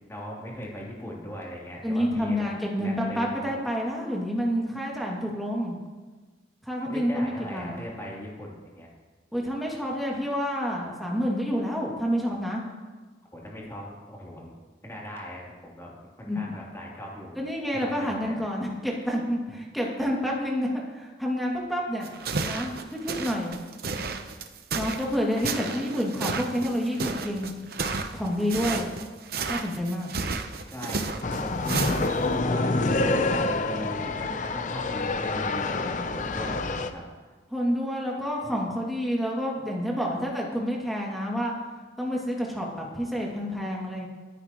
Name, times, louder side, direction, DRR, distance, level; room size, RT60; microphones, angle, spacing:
voice 1, 0.1-2.5 2.8-3.5 6.8-8.9 13.3-14.5 14.8-15.9 16.2-17.4 17.7-18.4 25.7-25.8 28.7-28.8 30.7-32.2 32.5-37.0 37.3-37.4, equal, 15° left, -4 dB, 3.0 m, -39 dB
voice 2, 1.8-5.8 6.7-7.8 9.3-12.6 16.3-16.4 17.4-22.1 22.4-23.6 24.7-27.5 28.1-28.9 29.5-30.1 37.5-41.5 42.0-44.1, equal, ahead, -3 dB, 2.3 m, -28 dB
sound 1, 22.0-32.3, right 4 dB, 60° right, 0.9 m, -32 dB
sound 2, 31.2-36.9, left 2 dB, 45° left, 0.7 m, -27 dB
24.0 x 9.9 x 3.1 m, 1.3 s
head